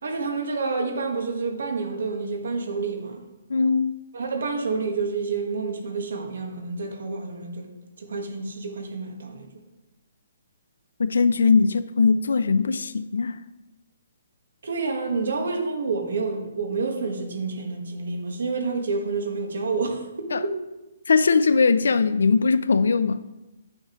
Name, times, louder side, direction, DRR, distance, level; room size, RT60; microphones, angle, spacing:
voice 1, 0.0-3.2 4.1-7.7 8.0-9.5 14.6-20.6, right 4 dB, 65° right, 1.4 m, -28 dB
voice 2, 3.5-4.0 11.0-13.4 20.3-20.4 21.1-23.2, left 4 dB, 80° left, 0.4 m, -20 dB
9.0 x 6.5 x 3.0 m
hypercardioid pair, 175°, 0 cm